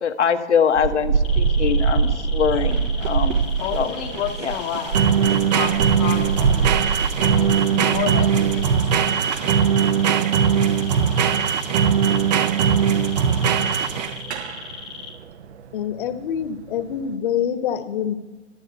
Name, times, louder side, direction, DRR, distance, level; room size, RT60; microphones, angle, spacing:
voice 1, 0.0-3.4 3.7-3.9 4.4-4.5, left 7 dB, 80° left, 8 dB, 1.3 m, -23 dB
sound 1, 0.7-17.1, right 5 dB, 70° right, 0.8 m, -27 dB
sound 2, 1.2-15.1, left 6 dB, 5° left, 0.3 m, -38 dB
sound 3, 2.7-14.3, right 7 dB, 40° right, 0.6 m, -20 dB
voice 2, 3.6-6.8 7.2-10.2, left 10 dB, 25° left, 0 dB, 0.8 m, -32 dB
voice 3, 15.7-18.1, left 9 dB, 50° left, 9 dB, 1.1 m, -25 dB
12.5 x 7.7 x 8.0 m, 1.1 s
hypercardioid pair, 140°, 34 cm